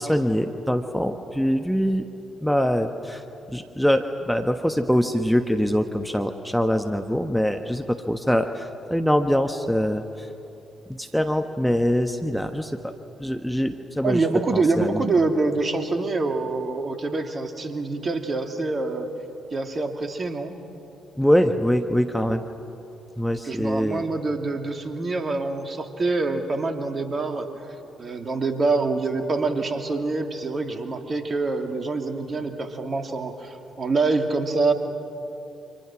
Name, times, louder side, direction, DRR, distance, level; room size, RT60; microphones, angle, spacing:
voice 1, 0.0-2.0 2.4-10.3 10.9-12.8 13.2-14.2 14.5-15.0 21.2-22.4 23.2-24.0, equal, ahead, 6 dB, 1.3 m, -23 dB
voice 2, 14.0-19.1 19.5-20.6 23.4-27.5 28.0-34.7, right 3 dB, 40° right, 5 dB, 2.7 m, -25 dB
29.5 x 26.0 x 6.2 m, 2.8 s
figure-of-eight pair, 45°, 0 cm